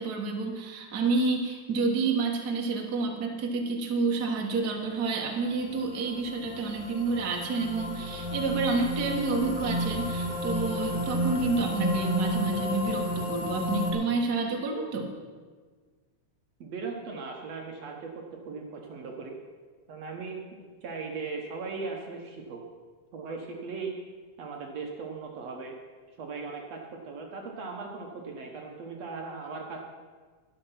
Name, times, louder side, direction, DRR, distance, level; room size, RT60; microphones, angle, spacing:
voice 1, 0.0-15.1, right 3 dB, 40° right, 1 dB, 1.8 m, -29 dB
sound 1, 5.4-13.9, equal, 10° left, 4.2 m, -32 dB
voice 2, 16.6-19.4 19.9-22.6 23.1-23.9 24.4-25.8 26.2-29.8, right 4 dB, 65° right, 1 dB, 2.2 m, -38 dB
12.5 x 11.5 x 5.8 m, 1.5 s
omnidirectional pair, 3.5 m